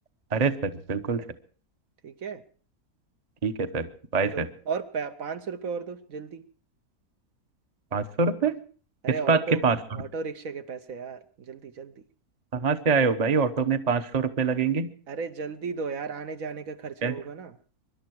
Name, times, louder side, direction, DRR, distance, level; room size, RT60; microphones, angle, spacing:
voice 1, 0.3-1.2 3.4-3.9 4.1-4.5 7.9-8.5 9.3-9.8 12.5-14.9 17.0-17.1, right 5 dB, 30° right, 10 dB, 0.9 m, -24 dB
voice 2, 2.0-2.4 4.2-6.4 9.0-9.6 9.9-11.9 15.1-17.6, right 5 dB, 65° right, 9 dB, 1.3 m, -35 dB
25.0 x 11.5 x 4.6 m, 0.41 s
omnidirectional pair, 1.6 m